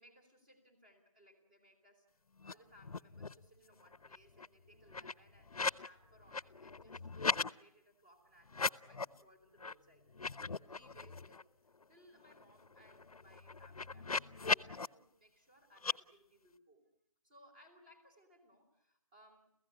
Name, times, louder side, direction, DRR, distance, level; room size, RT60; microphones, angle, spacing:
voice 1, 0.0-11.5 11.9-16.8 17.2-19.5, equal, 15° right, 1 dB, 3.0 m, -65 dB
sound 1, 2.4-3.5 3.8-5.9 6.2-7.5 8.5-9.2 9.6-9.7 10.1-11.4 11.8-11.9 12.2-14.9 15.8-16.0, left 4 dB, 85° left, 0.9 m, -39 dB
29.5 x 15.5 x 9.8 m, 0.75 s
figure-of-eight pair, 180°, 18 cm